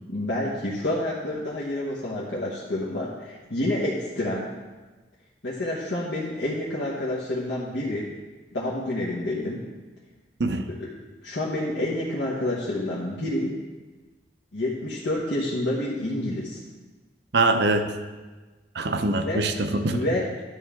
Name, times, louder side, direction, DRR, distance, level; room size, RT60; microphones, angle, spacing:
voice 1, 0.0-4.5 5.4-8.1 8.5-9.6 10.8-10.9 11.2-13.5 14.5-16.6 19.2-19.4 19.9-20.2, left 1 dB, 75° left, -6 dB, 1.2 m, -28 dB
voice 2, 17.3-17.9 18.7-20.0, right 2 dB, 65° right, 8 dB, 0.7 m, -23 dB
11.0 x 7.0 x 3.7 m, 1.3 s
head